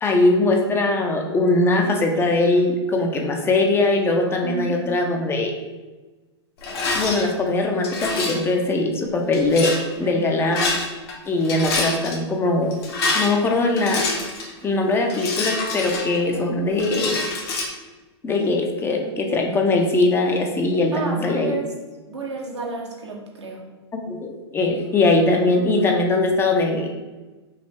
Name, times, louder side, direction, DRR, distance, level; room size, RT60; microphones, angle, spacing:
voice 1, 0.0-5.5 7.0-10.7 11.3-12.7 13.1-14.1 14.6-17.2 18.2-21.5 23.9-26.9, left 2 dB, 15° left, 3 dB, 0.5 m, -21 dB
voice 2, 4.4-4.9 10.0-10.3 20.9-21.7 22.1-23.6, right 3 dB, 90° right, -1 dB, 1.1 m, -31 dB
Rattle, 6.6-7.2 7.8-8.5 9.3-9.8 10.4-11.1 11.4-12.2 12.7-14.5 15.1-16.4 16.8-17.7, left 3 dB, 60° left, 1.2 m, -26 dB
5.4 x 2.0 x 3.5 m, 1.2 s
hypercardioid pair, 115°, 14 cm